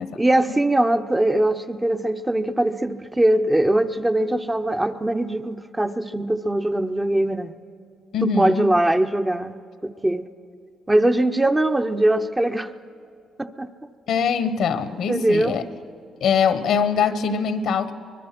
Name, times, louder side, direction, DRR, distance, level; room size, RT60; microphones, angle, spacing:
voice 1, 0.2-7.6 8.2-9.6 9.8-10.3 10.9-12.7 13.4-13.7 15.1-15.6, right 1 dB, 15° right, 7 dB, 0.8 m, -21 dB
voice 2, 8.1-8.7 14.1-15.6 16.2-17.9, left 6 dB, 75° left, 11 dB, 1.2 m, -22 dB
24.0 x 21.0 x 6.0 m, 2.4 s
cardioid pair, 90°, 0 cm